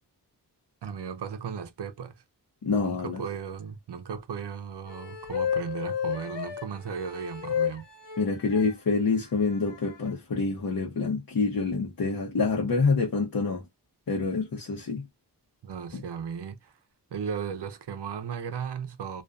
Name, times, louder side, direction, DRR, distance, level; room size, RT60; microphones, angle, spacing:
voice 1, 0.8-2.1 2.8-7.9 15.6-16.7 17.1-19.2, right 7 dB, 75° right, 0.6 m, -36 dB
voice 2, 2.6-3.2 8.2-13.6 14.1-15.1 15.9-16.0, left 4 dB, 55° left, 0.8 m, -27 dB
sound 1, 4.9-8.7 9.5-10.1, left 8 dB, 85° left, 1.0 m, -32 dB
2.5 x 2.2 x 2.5 m
cardioid pair, 40°, 41 cm